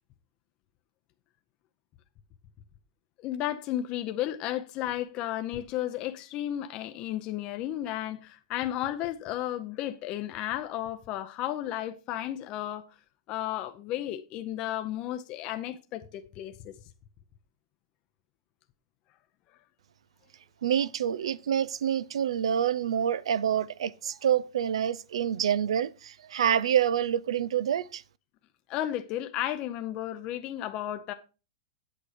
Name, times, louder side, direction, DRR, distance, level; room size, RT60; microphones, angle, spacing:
voice 1, 3.2-12.8 13.3-16.7 28.7-31.1, left 12 dB, 35° left, 0.6 m, -33 dB
voice 2, 20.6-28.0, right 9 dB, 90° right, 0.5 m, -27 dB
8.6 x 6.2 x 5.0 m
supercardioid pair, 145°, 3 cm